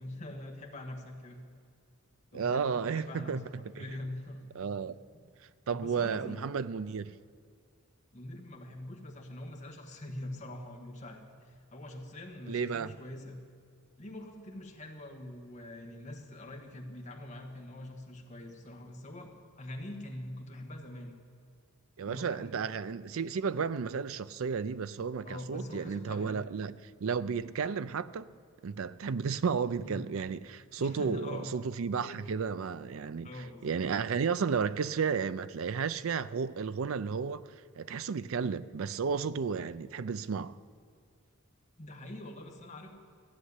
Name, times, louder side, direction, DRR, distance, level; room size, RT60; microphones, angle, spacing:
voice 1, 0.0-1.4 2.3-4.4 5.1-5.3 5.7-6.6 8.1-13.4 14.0-21.2 22.0-22.6 25.2-26.5 29.8-30.1 30.8-31.6 32.0-32.2 33.2-33.9 41.8-42.9, left 1 dB, 35° left, 1.5 m, -44 dB
voice 2, 2.3-3.8 4.6-5.0 5.7-7.2 12.5-12.9 22.0-26.7 27.0-28.3 28.6-33.3 33.6-40.6, right 6 dB, 65° right, 0.4 m, -33 dB
14.5 x 6.6 x 9.7 m
head